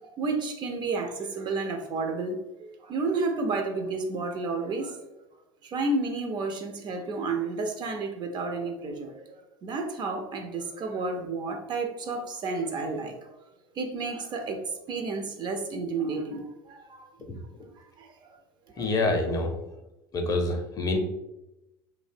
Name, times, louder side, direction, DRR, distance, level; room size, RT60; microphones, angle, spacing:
voice 1, 0.0-2.4 2.8-5.0 5.6-13.1 13.8-14.6 14.9-17.1 18.0-18.4 18.7-18.9, right 3 dB, 40° right, 5 dB, 0.4 m, -31 dB
voice 2, 18.8-19.5 20.1-21.0, left 2 dB, 30° left, 3 dB, 0.5 m, -26 dB
2.6 x 2.0 x 2.4 m, 0.94 s
hypercardioid pair, 80°, 12 cm